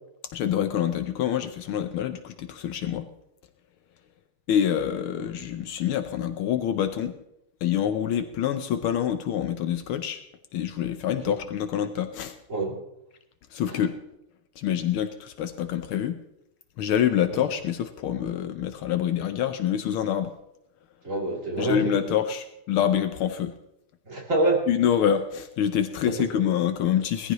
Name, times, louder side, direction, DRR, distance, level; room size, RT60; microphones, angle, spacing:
voice 1, 0.3-3.1 4.5-7.2 7.6-10.2 10.5-12.4 13.5-14.0 14.6-16.2 16.8-20.3 21.6-23.5 24.7-27.3, left 9 dB, 80° left, 8 dB, 1.6 m, -26 dB
voice 2, 21.0-22.2 24.1-24.7 26.1-26.4, right 2 dB, 35° right, -2 dB, 3.3 m, -27 dB
20.0 x 14.5 x 3.1 m, 0.82 s
omnidirectional pair, 2.3 m